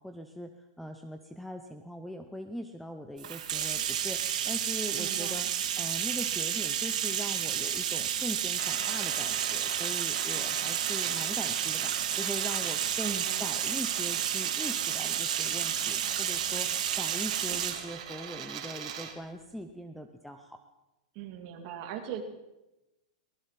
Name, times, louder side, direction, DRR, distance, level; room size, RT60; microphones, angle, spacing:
voice 1, 0.0-5.5 5.7-16.7 17.0-20.6, equal, ahead, 7 dB, 0.6 m, -41 dB
Bathtub (filling or washing), 3.2-17.8, right 9 dB, 70° right, 3.4 m, -31 dB
voice 2, 5.0-5.5 13.0-13.5 21.1-22.2, right 9 dB, 30° right, 4 dB, 2.5 m, -40 dB
sound 1, 8.6-19.2, right 8 dB, 55° right, 3.6 m, -42 dB
23.5 x 19.5 x 5.8 m, 0.98 s
supercardioid pair, 180°, 4 cm